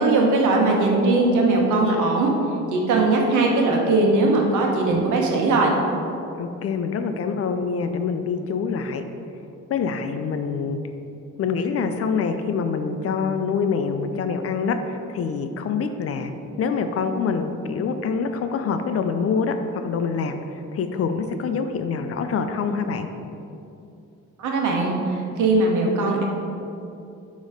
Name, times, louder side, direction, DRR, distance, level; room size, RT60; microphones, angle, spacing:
voice 1, 0.0-2.3 2.7-5.7 24.4-24.9 25.4-26.3, right 2 dB, 80° right, 0 dB, 1.1 m, -19 dB
voice 2, 6.4-9.0 9.7-10.8 11.4-16.3 16.6-23.1, left 5 dB, 50° left, 8 dB, 0.5 m, -25 dB
6.3 x 3.1 x 5.1 m, 2.7 s
cardioid pair, 90°, 30 cm